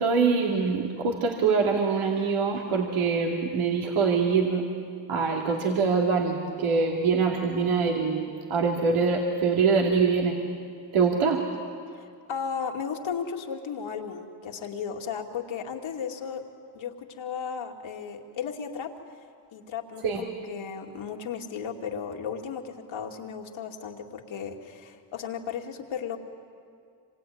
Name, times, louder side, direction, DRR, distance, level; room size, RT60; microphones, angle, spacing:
voice 1, 0.0-4.6 5.1-8.2 8.5-10.4 10.9-11.4 20.0-20.2, right 5 dB, 80° right, -1 dB, 2.6 m, -24 dB
voice 2, 11.9-16.4 16.7-18.9 19.5-26.2, left 7 dB, 70° left, 3 dB, 2.6 m, -35 dB
26.5 x 24.0 x 9.5 m, 2.4 s
supercardioid pair, 55°, 49 cm